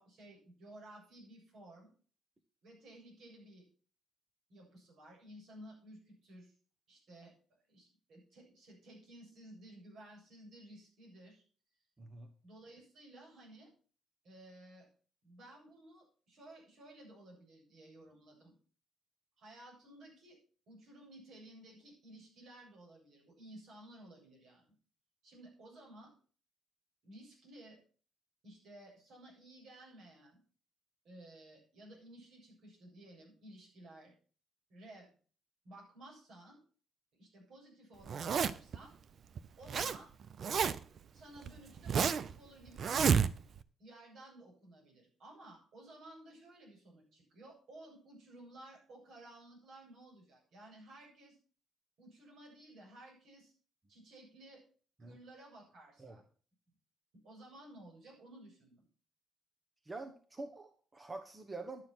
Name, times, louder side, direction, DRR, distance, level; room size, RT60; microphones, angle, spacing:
voice 1, 0.0-1.9 2.6-3.6 4.5-6.5 6.9-7.3 7.7-11.4 12.4-13.7 14.2-14.9 15.2-18.5 19.4-20.4 20.7-24.6 25.2-26.1 27.0-27.8 28.4-30.4 31.0-34.1 34.7-35.1 35.6-36.6 37.2-38.9 39.6-40.1 41.1-43.0 43.8-51.4 52.0-53.5 53.9-54.6 55.0-56.2 57.2-58.8, right 1 dB, 75° right, -2 dB, 7.7 m, -55 dB
voice 2, 12.0-12.3 55.0-55.2 56.0-56.2 59.8-61.8, right 3 dB, 25° right, 6 dB, 1.2 m, -46 dB
Zipper (clothing), 38.1-38.8 39.4-40.0 40.2-41.0 41.5-42.3 42.8-43.6, right 7 dB, 55° right, 0.7 m, -30 dB
11.5 x 7.1 x 6.1 m, 0.42 s
cardioid pair, 90°, 0 cm